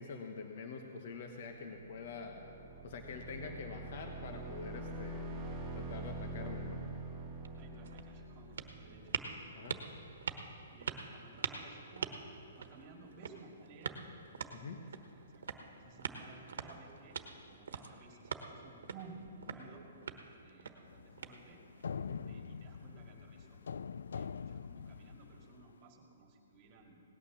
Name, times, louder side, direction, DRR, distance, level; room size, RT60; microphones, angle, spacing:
voice 1, 0.0-2.4 2.8-5.3 5.7-6.8 9.5-9.8 14.5-14.8 21.9-22.2, left 4 dB, 50° left, 4 dB, 1.1 m, -45 dB
sound 1, 1.8-9.5, right 2 dB, 10° right, 1.8 m, -45 dB
voice 2, 6.2-6.7 7.6-9.1 10.7-12.2 12.6-14.0 14.8-17.2 17.5-19.9 20.4-21.6 22.2-23.6 24.1-27.0, right 3 dB, 30° right, 1 dB, 2.2 m, -56 dB
sound 2, 7.3-21.8, right 5 dB, 80° right, 1.2 m, -45 dB
sound 3, 20.9-25.7, left 6 dB, 85° left, 0.3 m, -44 dB
18.0 x 9.5 x 7.3 m, 3.0 s
hypercardioid pair, 160°, 0 cm